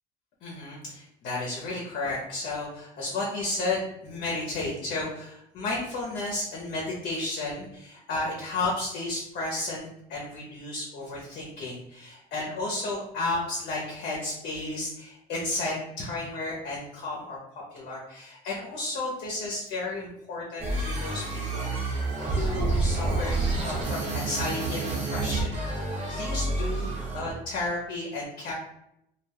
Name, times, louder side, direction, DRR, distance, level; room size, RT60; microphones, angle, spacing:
voice 1, 0.4-22.0 22.4-26.9 27.1-28.5, left 2 dB, 65° left, -4 dB, 0.8 m, -33 dB
sound 1, 20.6-27.3, right 2 dB, 40° right, 1.1 m, -29 dB
2.4 x 2.2 x 3.4 m, 0.79 s
supercardioid pair, 75°, 17 cm